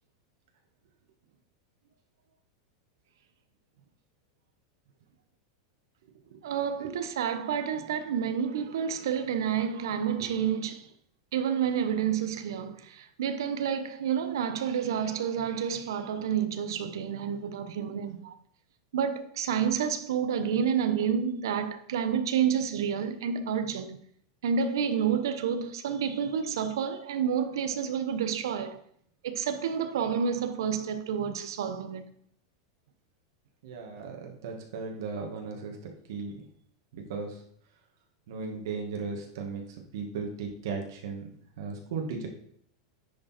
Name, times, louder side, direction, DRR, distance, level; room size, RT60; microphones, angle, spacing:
voice 1, 6.4-10.9 11.3-18.3 18.9-24.0 24.4-28.8 29.2-32.1, right 7 dB, 75° right, 1.0 m, -29 dB
voice 2, 33.6-35.8 36.1-36.3 36.9-37.4 38.3-39.6 39.9-41.3 41.6-42.3, right 5 dB, 60° right, 1.9 m, -36 dB
10.5 x 5.3 x 4.3 m
supercardioid pair, 175°, 2 cm